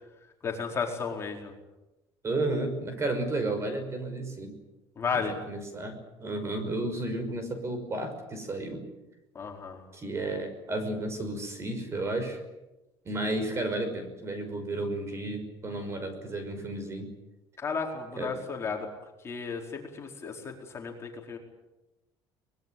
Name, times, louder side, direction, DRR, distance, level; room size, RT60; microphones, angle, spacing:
voice 1, 0.4-1.5 5.0-5.4 9.3-9.8 17.6-18.9 19.2-21.4, left 5 dB, 25° left, 1 dB, 4.6 m, -33 dB
voice 2, 2.2-4.6 5.5-8.8 9.9-12.4 13.0-17.1 18.2-18.3, right 2 dB, 25° right, 8 dB, 5.7 m, -32 dB
24.0 x 21.0 x 9.2 m, 1.0 s
cardioid pair, 135°, 10 cm